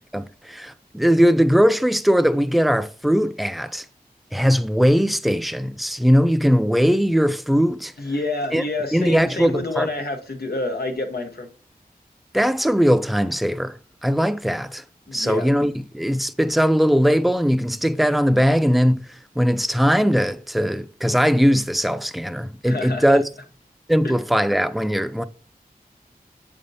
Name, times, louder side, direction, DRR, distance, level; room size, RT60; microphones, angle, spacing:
voice 1, 0.1-3.8 4.3-7.9 8.5-8.6 8.9-9.9 12.3-13.8 14.0-14.8 15.1-19.0 19.4-23.2 23.9-25.2, equal, ahead, 0.4 m, -19 dB
voice 2, 8.0-11.5 15.1-15.5 22.6-23.2 24.0-24.1, left 2 dB, 85° left, 1.0 m, -28 dB
7.6 x 5.0 x 2.7 m
wide cardioid pair, 55°, 16 cm